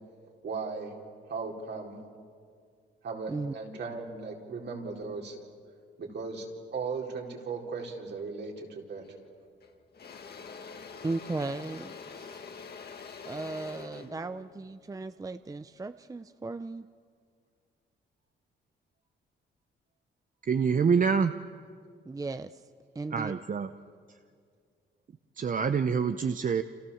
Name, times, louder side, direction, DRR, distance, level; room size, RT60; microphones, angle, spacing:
voice 1, 0.4-1.0 1.3-2.0 3.0-5.4 6.0-9.0 14.0-14.3, right 4 dB, 60° right, 0 dB, 4.7 m, -37 dB
Engine / Drill, 9.0-9.3 9.6-15.7, left 5 dB, 55° left, 2.2 m, -46 dB
voice 2, 11.0-12.4 13.2-16.9 22.1-22.6 22.9-23.3, right 3 dB, 15° right, 11 dB, 0.6 m, -36 dB
voice 3, 20.5-21.3 23.1-23.7 25.4-26.6, right 6 dB, 45° right, 9 dB, 0.9 m, -26 dB
29.5 x 28.0 x 7.2 m, 2.1 s
cardioid pair, 100°, 20 cm